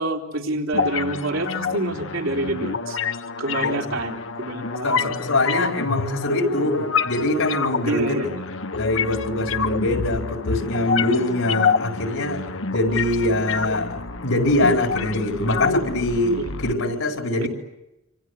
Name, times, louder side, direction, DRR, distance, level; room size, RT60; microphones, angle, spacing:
voice 1, 0.0-3.0 3.4-5.2 7.8-8.5 16.3-16.5 17.4-17.5, right 2 dB, 80° right, 1 dB, 3.7 m, -27 dB
sound 1, 0.7-16.7, left 5 dB, 70° left, 1.1 m, -27 dB
voice 2, 4.8-8.2 8.7-16.4 16.6-17.5, left 1 dB, 90° left, 3 dB, 4.8 m, -23 dB
27.0 x 26.0 x 8.2 m, 0.93 s
head